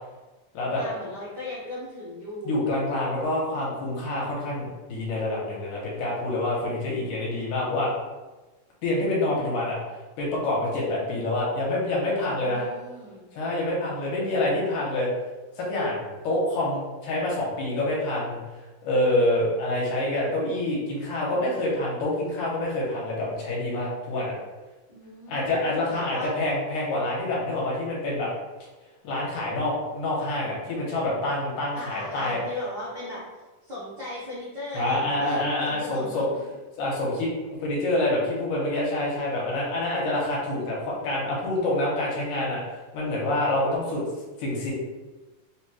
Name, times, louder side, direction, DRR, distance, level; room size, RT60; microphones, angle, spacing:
voice 1, 0.8-2.7 12.4-13.3 24.9-26.3 31.7-36.4, left 1 dB, 65° right, -10 dB, 1.1 m, -38 dB
voice 2, 2.4-7.9 8.8-9.8 10.2-12.6 13.3-15.1 15.6-18.4 18.8-24.4 25.3-28.3 29.0-32.4 34.7-36.3 36.8-37.3 37.6-42.6 42.9-44.0 44.4-44.7, left 1 dB, 75° left, -4 dB, 2.4 m, -27 dB
5.1 x 3.0 x 2.3 m, 1.2 s
omnidirectional pair, 3.8 m